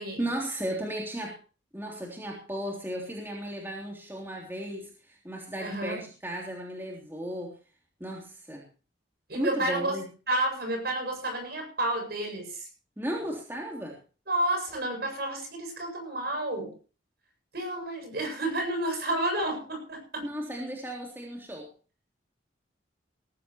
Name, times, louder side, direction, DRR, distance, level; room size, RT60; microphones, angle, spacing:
voice 1, 0.2-1.4 1.7-7.5 8.0-8.6 9.3-10.1 13.0-14.0 20.2-21.7, right 1 dB, 10° right, -1 dB, 3.3 m, -35 dB
voice 2, 5.6-6.0 9.3-10.0 10.3-12.7 14.3-16.7 17.5-20.3, right 1 dB, 55° right, 5 dB, 8.0 m, -30 dB
19.5 x 14.5 x 3.1 m, 0.36 s
head